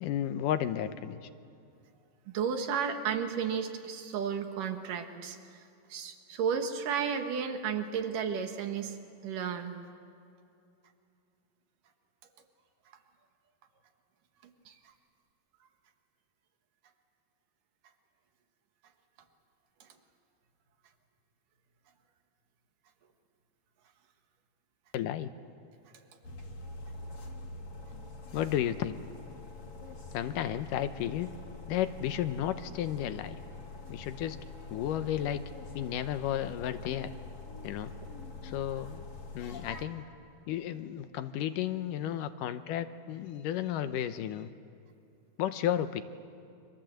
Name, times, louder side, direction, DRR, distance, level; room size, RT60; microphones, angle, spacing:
voice 1, 0.0-1.2 24.9-25.3 28.3-29.0 30.1-31.3 31.7-33.4 33.9-34.4 34.7-35.5 35.8-37.1 37.6-37.9 38.4-39.0 39.3-40.0 40.5-44.5 45.4-46.0, left 11 dB, 80° left, 10 dB, 2.4 m, -33 dB
voice 2, 2.3-5.6 5.9-9.0 9.2-9.8 14.7-14.8 19.8-19.9, right 7 dB, 75° right, 6 dB, 3.2 m, -33 dB
sound 1, 26.2-39.9, left 3 dB, 55° left, 3.4 m, -45 dB
29.5 x 25.5 x 7.8 m, 2.6 s
omnidirectional pair, 3.9 m